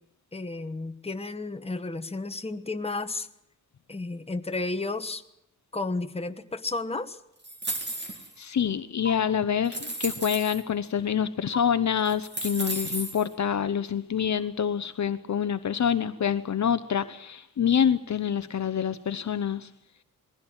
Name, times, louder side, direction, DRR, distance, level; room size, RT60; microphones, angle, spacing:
voice 1, 0.3-3.3 3.9-5.2 5.7-7.2, left 3 dB, 20° left, 1.3 m, -32 dB
sound 1, 7.4-8.4 9.1-9.2 9.6-10.6 11.5-11.6 12.0-13.3, right 1 dB, 30° right, 2.8 m, -34 dB
voice 2, 8.4-19.7, left 8 dB, 55° left, 0.8 m, -26 dB
21.0 x 16.0 x 8.9 m
wide cardioid pair, 135°, 34 cm